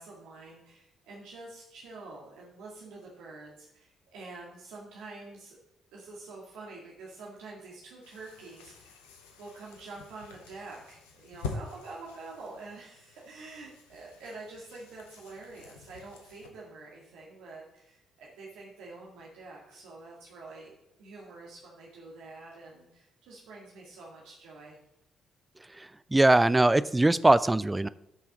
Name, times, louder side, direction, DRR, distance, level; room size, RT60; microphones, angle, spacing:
voice 1, 0.0-5.6 5.9-9.1 9.4-24.8, right 3 dB, 65° right, -4 dB, 1.8 m, -47 dB
sound 1, 8.0-16.5, left 4 dB, 75° left, 1.0 m, -46 dB
voice 2, 25.7-27.9, right 2 dB, 15° right, 16 dB, 0.5 m, -22 dB
13.0 x 5.7 x 3.8 m, 0.86 s
figure-of-eight pair, 45°, 0 cm